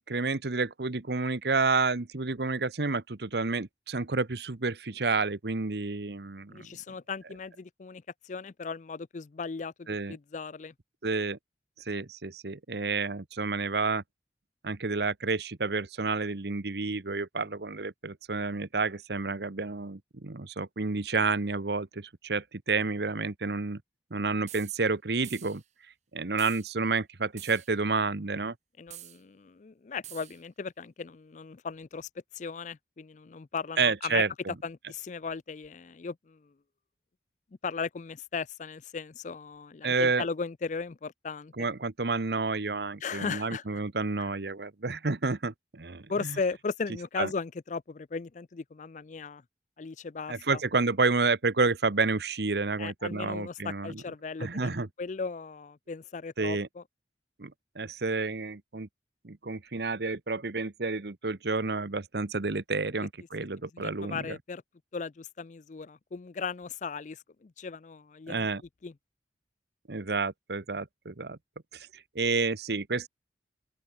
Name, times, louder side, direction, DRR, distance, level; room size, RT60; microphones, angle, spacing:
voice 1, 0.0-6.7 9.9-10.2 11.0-11.4 11.8-14.0 14.6-23.8 24.1-25.6 26.1-28.5 33.8-34.5 39.8-40.3 41.6-46.4 47.2-47.3 50.3-54.0 54.4-54.9 56.4-56.7 57.4-58.9 59.2-64.4 68.3-68.6 69.9-71.4 71.7-73.1, right 4 dB, 65° right, 1.0 m, -30 dB
voice 2, 6.5-10.7 28.8-32.1 32.3-34.2 34.6-36.5 37.6-41.5 43.0-43.6 44.2-44.3 46.1-49.4 49.8-50.6 52.8-56.8 63.7-64.6 64.9-68.5 68.8-68.9, left 5 dB, 45° left, 0.4 m, -37 dB
sound 1, 24.5-24.8 25.2-25.6 26.4-26.7 27.4-27.7 28.9-29.2 30.0-30.4, right 13 dB, 40° right, 0.9 m, -46 dB
open air
head